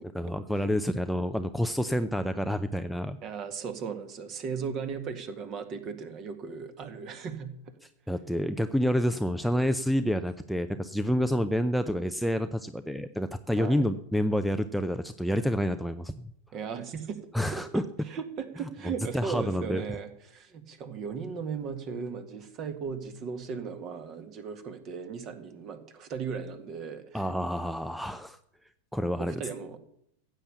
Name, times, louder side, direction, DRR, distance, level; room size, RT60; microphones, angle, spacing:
voice 1, 0.1-3.2 8.1-16.2 17.3-17.8 18.6-19.8 27.1-28.4 28.9-29.4, equal, ahead, 12 dB, 0.6 m, -28 dB
voice 2, 3.2-7.7 13.6-13.9 16.5-17.2 17.5-17.6 18.0-27.3 29.2-29.8, right 6 dB, 35° right, 10 dB, 1.9 m, -37 dB
15.5 x 8.8 x 7.1 m, 0.72 s
figure-of-eight pair, 90°, 0 cm